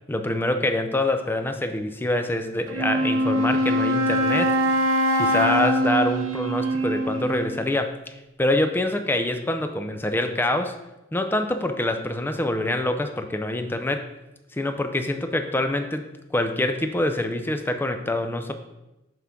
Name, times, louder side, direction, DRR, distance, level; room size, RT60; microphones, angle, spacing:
voice 1, 0.1-4.6 5.2-10.8 11.1-14.1 14.5-16.0 16.3-18.5, left 1 dB, 10° left, 7 dB, 0.4 m, -25 dB
Wind instrument woodwind instrument, 2.7-7.6, equal, 70° right, 0.7 m, -23 dB
5.8 x 3.7 x 5.9 m, 0.97 s
head